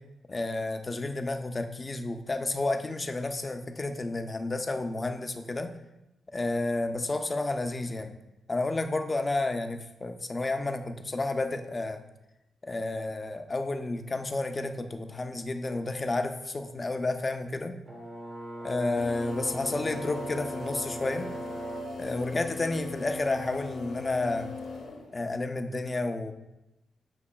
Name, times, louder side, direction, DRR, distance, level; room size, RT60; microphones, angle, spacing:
voice 1, 0.3-5.7 6.3-8.1 8.5-12.0 12.6-17.7 18.6-21.3 22.0-24.5 25.1-26.3, left 2 dB, 20° left, 7 dB, 0.3 m, -31 dB
Brass instrument, 17.9-22.0, right 1 dB, 15° right, 0.6 m, -39 dB
sound 1, 19.0-25.3, left 3 dB, 90° left, 0.7 m, -40 dB
6.9 x 2.9 x 2.2 m, 0.92 s
wide cardioid pair, 150°, 0 cm